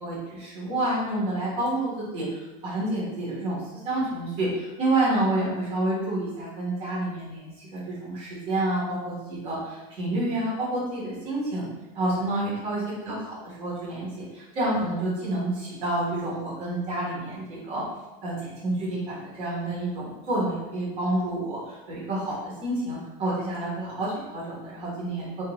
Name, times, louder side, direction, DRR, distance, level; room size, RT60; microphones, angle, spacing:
voice 1, 0.0-11.7 11.9-14.1 14.3-17.8 18.2-25.3, right 1 dB, 35° right, -8 dB, 1.2 m, -29 dB
2.5 x 2.5 x 2.9 m, 1.1 s
supercardioid pair, 175°, 18 cm